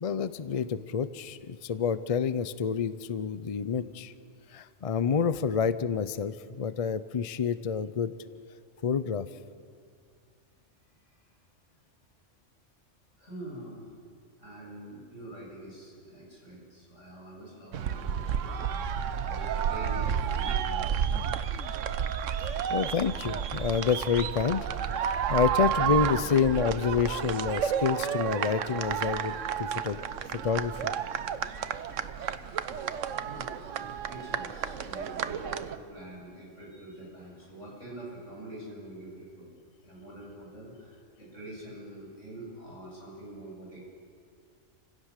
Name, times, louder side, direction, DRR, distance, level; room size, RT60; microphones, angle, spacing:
voice 1, 0.0-4.1 4.5-8.1 8.8-9.3 22.7-24.7 25.3-30.0 30.4-30.9, left 6 dB, 40° left, 14 dB, 0.5 m, -28 dB
voice 2, 13.2-13.9 14.4-21.1 33.1-39.5 39.8-43.8, right 1 dB, 85° left, -4 dB, 8.6 m, -45 dB
sound 1, 17.7-35.8, right 8 dB, 85° right, 1.2 m, -31 dB
29.0 x 16.0 x 6.6 m, 2.2 s
omnidirectional pair, 1.2 m